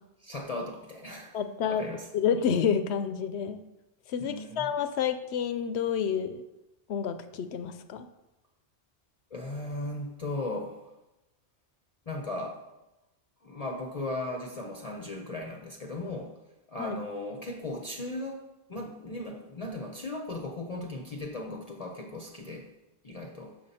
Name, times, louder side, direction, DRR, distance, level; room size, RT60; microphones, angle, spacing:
voice 1, 0.2-1.4 1.6-2.1 4.2-4.7 9.3-10.8 12.1-12.6 13.4-16.4 16.7-22.7 23.0-23.6, left 2 dB, 40° left, 1 dB, 0.6 m, -37 dB
voice 2, 1.3-1.8 2.1-3.6 4.1-6.4 6.9-8.1 16.8-17.0, left 7 dB, 75° left, 9 dB, 0.8 m, -29 dB
6.8 x 6.0 x 4.1 m, 0.98 s
omnidirectional pair, 1.2 m